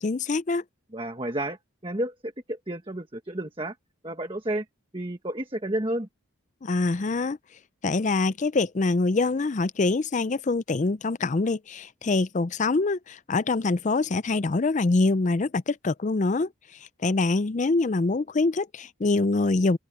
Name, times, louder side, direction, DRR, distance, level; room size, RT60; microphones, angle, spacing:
voice 1, 0.0-0.6 6.6-7.4 7.8-16.5 17.0-19.8, left 3 dB, 35° left, 0.4 m, -24 dB
voice 2, 0.9-1.6 1.8-3.7 4.0-4.6 4.9-6.1, right 1 dB, 25° right, 1.4 m, -31 dB
open air
head